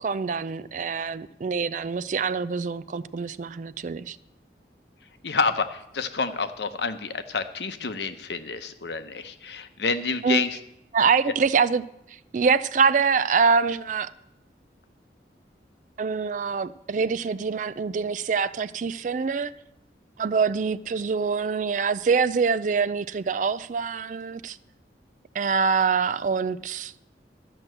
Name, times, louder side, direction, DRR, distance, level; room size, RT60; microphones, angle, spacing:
voice 1, 0.0-4.2 10.2-10.5 10.9-14.1 16.0-19.5 20.2-24.6 25.3-26.9, right 5 dB, 45° right, 0.4 m, -25 dB
voice 2, 5.2-10.5, left 4 dB, 70° left, 0.9 m, -28 dB
13.0 x 6.0 x 7.8 m
head